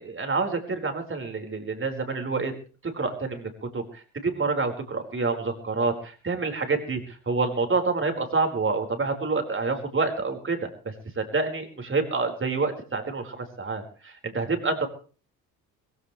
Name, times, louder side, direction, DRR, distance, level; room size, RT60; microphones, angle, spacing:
voice 1, 0.0-2.5 2.9-14.9, right 3 dB, 30° right, 5 dB, 4.8 m, -28 dB
22.5 x 16.0 x 3.3 m, 0.38 s
hypercardioid pair, 55°, 42 cm